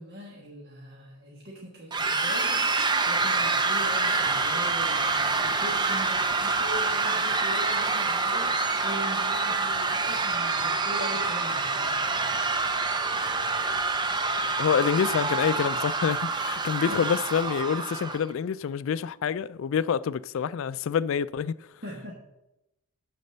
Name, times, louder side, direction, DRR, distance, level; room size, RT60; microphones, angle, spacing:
voice 1, 0.0-12.4 16.9-17.0 21.8-22.1, equal, 50° right, 1.3 m, -41 dB
sound 1, 1.9-18.2, right 3 dB, 20° right, 0.5 m, -26 dB
voice 2, 14.6-21.5, left 7 dB, 60° left, 0.3 m, -27 dB
12.0 x 4.1 x 6.7 m
head